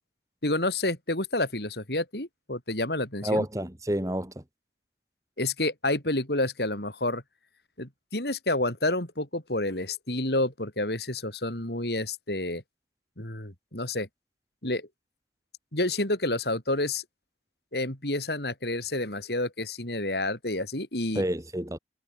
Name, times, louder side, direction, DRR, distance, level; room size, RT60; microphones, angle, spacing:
voice 1, 0.4-3.5 5.4-7.2 7.8-12.6 13.2-14.1 14.6-14.9 15.7-17.0 17.7-21.2, left 2 dB, 70° left, 5.6 m, -29 dB
voice 2, 3.2-4.4 21.2-21.8, right 1 dB, 20° right, 1.8 m, -29 dB
head